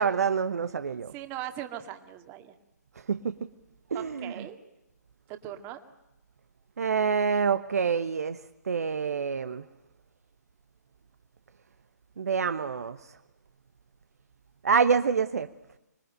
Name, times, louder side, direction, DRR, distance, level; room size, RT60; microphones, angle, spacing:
voice 1, 0.0-1.1 3.1-3.3 3.9-4.5 6.8-8.4 8.6-9.7 12.2-13.0 14.6-15.5, right 6 dB, 60° right, 11 dB, 1.1 m, -26 dB
voice 2, 1.1-2.5 3.9-4.6 5.3-5.8, right 12 dB, 20° right, 7 dB, 2.1 m, -39 dB
26.0 x 22.0 x 9.0 m, 0.94 s
figure-of-eight pair, 135°, 9 cm